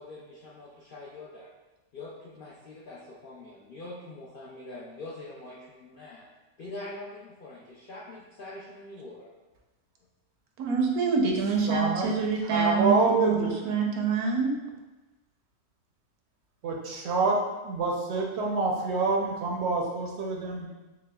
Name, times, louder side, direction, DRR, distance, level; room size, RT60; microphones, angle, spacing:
voice 1, 0.0-1.5 1.9-6.3 6.6-9.3, left 2 dB, 65° left, -7 dB, 0.5 m, -44 dB
voice 2, 10.6-14.5, right 5 dB, 85° right, 1 dB, 1.1 m, -26 dB
voice 3, 11.7-13.5 16.6-17.4 17.6-20.7, right 3 dB, 65° right, -1 dB, 0.7 m, -27 dB
6.0 x 2.2 x 2.2 m, 1.1 s
omnidirectional pair, 1.5 m